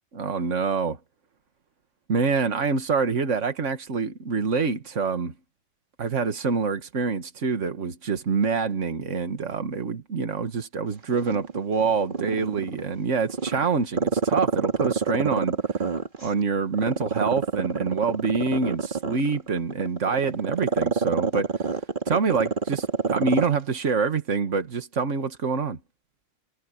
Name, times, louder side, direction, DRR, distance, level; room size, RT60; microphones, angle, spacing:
voice 1, 0.1-1.0 2.1-5.3 6.0-15.8 16.2-21.7 22.1-25.8, right 5 dB, 75° right, 1.9 m, -26 dB
Growling, 11.1-12.9 13.3-16.3 16.7-23.6 23.9-24.0, right 4 dB, 40° right, 2.4 m, -26 dB
omnidirectional pair, 1.3 m